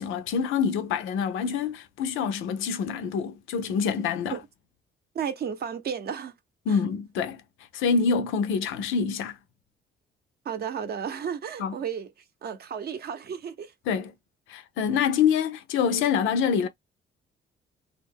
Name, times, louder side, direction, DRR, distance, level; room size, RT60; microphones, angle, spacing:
voice 1, 0.0-4.4 6.7-7.4 7.7-9.3 11.6-11.7 13.9-14.1 14.5-16.7, left 6 dB, 90° left, 0.5 m, -26 dB
voice 2, 5.1-6.3 6.7-6.8 10.4-12.1 12.4-13.7, right 7 dB, 55° right, 0.6 m, -33 dB
2.4 x 2.1 x 3.4 m
cardioid pair, 90°, 20 cm